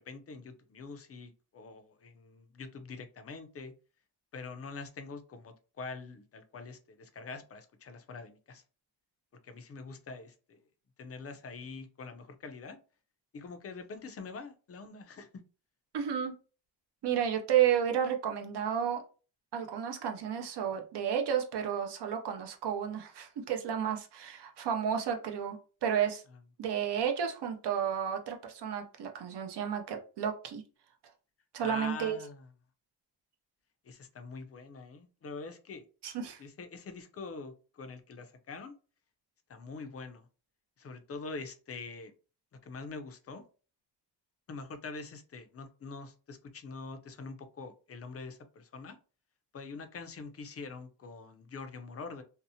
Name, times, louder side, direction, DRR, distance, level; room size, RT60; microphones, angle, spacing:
voice 1, 0.0-3.7 4.3-8.6 9.4-10.6 11.0-12.8 13.3-15.3 26.3-26.4 31.6-32.5 33.8-35.8 36.4-38.7 39.5-40.3 40.8-42.1 42.6-43.4 44.5-49.0 49.5-52.2, left 4 dB, 35° left, 8 dB, 0.4 m, -44 dB
voice 2, 15.9-16.3 17.0-19.0 19.5-26.2 26.6-30.6 31.5-32.2 36.0-36.4, right 8 dB, 65° right, 4 dB, 0.6 m, -32 dB
2.7 x 2.0 x 2.6 m, 0.36 s
wide cardioid pair, 110°, 44 cm